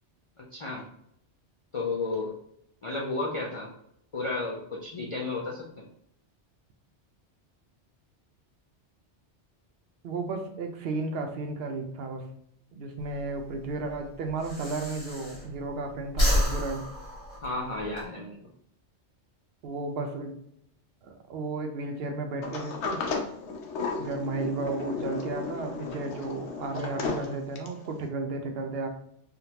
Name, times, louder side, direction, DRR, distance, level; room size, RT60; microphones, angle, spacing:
voice 1, 0.4-0.9 1.7-2.4 2.8-3.7 4.1-5.8 17.4-18.4, left 3 dB, 55° left, -2 dB, 0.3 m, -32 dB
voice 2, 10.0-12.3 12.7-16.9 19.6-20.4 21.0-23.0 24.0-28.9, right 3 dB, 65° right, 5 dB, 0.7 m, -33 dB
Breathing, 13.0-15.8 16.1-18.0, equal, 30° left, 1.1 m, -29 dB
Sliding door, 22.4-27.9, left 4 dB, 85° left, 0.9 m, -34 dB
3.6 x 2.1 x 2.8 m, 0.70 s
omnidirectional pair, 1.2 m